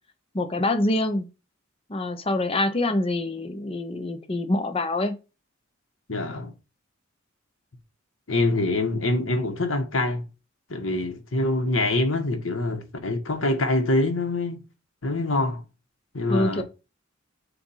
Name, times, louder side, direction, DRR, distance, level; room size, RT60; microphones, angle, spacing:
voice 1, 0.3-1.3 1.9-5.2 16.3-16.6, left 1 dB, 30° left, 0.7 m, -25 dB
voice 2, 6.1-6.5 8.3-10.2 10.7-14.6 15.0-15.6 16.1-16.6, left 2 dB, 80° left, 1.3 m, -25 dB
7.1 x 2.6 x 5.5 m
head